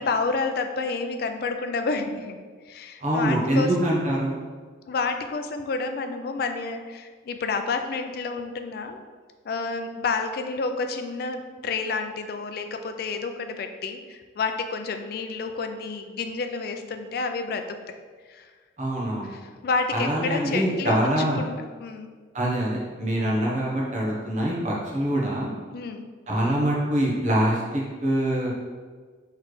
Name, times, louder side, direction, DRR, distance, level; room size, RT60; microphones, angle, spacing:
voice 1, 0.0-2.4 2.7-4.0 4.9-9.0 9.5-17.7 18.3-18.5 19.2-22.1 25.7-26.0, left 4 dB, 50° left, 7 dB, 0.3 m, -29 dB
voice 2, 3.0-4.4 18.8-19.3 19.9-21.4 22.3-25.5 26.3-28.5, right 1 dB, 35° right, -4 dB, 0.8 m, -24 dB
4.1 x 3.1 x 3.1 m, 1.5 s
head